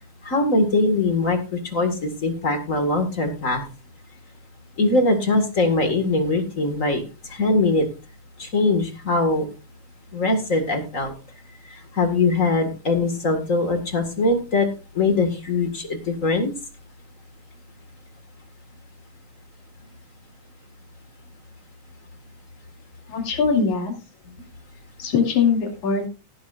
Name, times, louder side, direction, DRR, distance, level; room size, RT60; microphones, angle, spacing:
voice 1, 0.2-3.6 4.8-7.0 7.3-7.8 8.4-9.5 10.1-11.1 11.9-14.7 14.9-16.5, left 2 dB, 30° left, 6 dB, 1.8 m, -21 dB
voice 2, 23.1-23.9 25.0-26.1, left 5 dB, 75° left, 2 dB, 4.0 m, -21 dB
17.5 x 10.5 x 2.5 m, 0.30 s
omnidirectional pair, 3.4 m